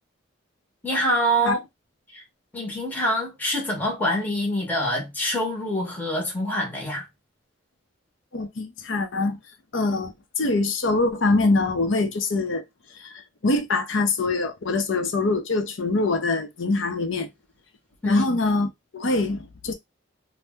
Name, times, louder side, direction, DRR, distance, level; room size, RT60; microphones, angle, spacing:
voice 1, 0.8-1.6 2.1-2.2 2.5-7.1 18.0-18.4, equal, 10° left, 0.8 m, -25 dB
voice 2, 8.3-9.4 9.7-12.6 12.9-17.3 18.1-19.7, left 3 dB, 80° left, 0.6 m, -24 dB
2.7 x 2.1 x 3.4 m
head